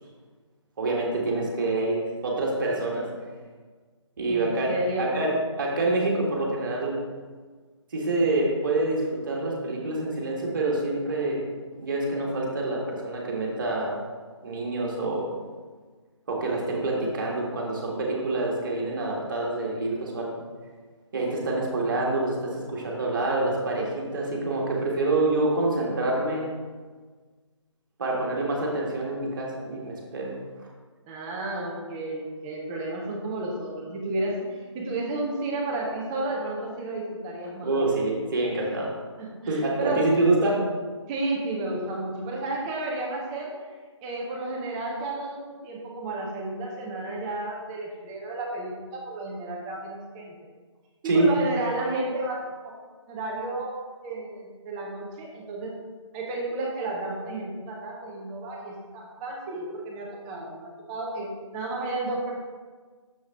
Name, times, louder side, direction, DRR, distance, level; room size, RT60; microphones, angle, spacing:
voice 1, 0.8-3.1 4.2-4.7 5.0-7.0 7.9-11.4 11.8-14.0 14.4-15.3 16.3-20.3 21.1-26.4 28.0-30.3 37.6-38.9 39.5-40.6 51.0-51.3, right 2 dB, 40° right, -2 dB, 1.7 m, -26 dB
voice 2, 4.3-5.1 31.0-37.8 39.2-40.1 41.1-43.7 44.0-50.5 51.0-52.8 53.1-53.7 54.0-55.7 56.1-62.3, right 2 dB, 10° right, -1 dB, 0.5 m, -32 dB
6.7 x 6.2 x 3.6 m, 1.5 s
figure-of-eight pair, 155°, 16 cm